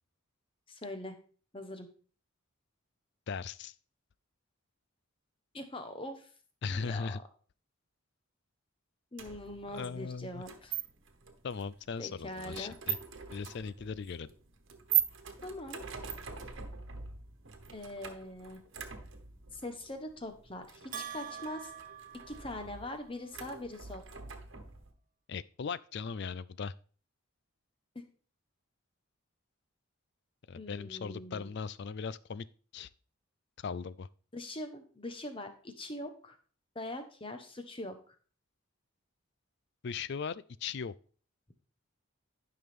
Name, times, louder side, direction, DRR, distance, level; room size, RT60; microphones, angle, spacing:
voice 1, 0.7-1.2 1.5-1.9 5.5-6.3 6.7-7.2 9.1-10.8 12.0-12.7 15.4-15.9 17.7-18.6 19.5-21.7 22.3-24.0 30.6-31.5 34.3-36.4 36.7-38.0, left 1 dB, 25° left, 7 dB, 1.1 m, -42 dB
voice 2, 3.3-3.7 6.6-7.2 9.7-10.4 11.4-13.0 13.3-14.3 25.3-26.7 30.5-32.5 32.7-32.9 33.6-34.1 39.8-40.9, left 5 dB, 50° left, 18 dB, 0.4 m, -38 dB
sound 1, 9.2-24.9, right 9 dB, 60° right, 1.3 m, -40 dB
Bell, 20.9-23.1, right 8 dB, 40° right, 0.7 m, -45 dB
12.5 x 6.0 x 3.6 m, 0.43 s
head